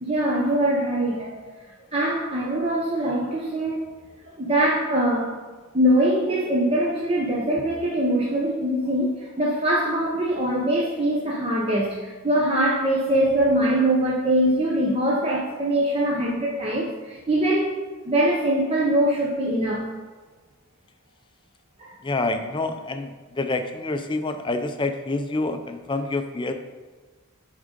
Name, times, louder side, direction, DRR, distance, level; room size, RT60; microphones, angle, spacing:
voice 1, 0.0-1.4 1.9-3.9 4.2-5.3 5.7-19.9 21.8-22.0, right 1 dB, 25° right, -4 dB, 0.7 m, -23 dB
voice 2, 22.0-26.5, left 2 dB, 20° left, 7 dB, 0.4 m, -27 dB
8.9 x 3.6 x 5.1 m, 1.3 s
head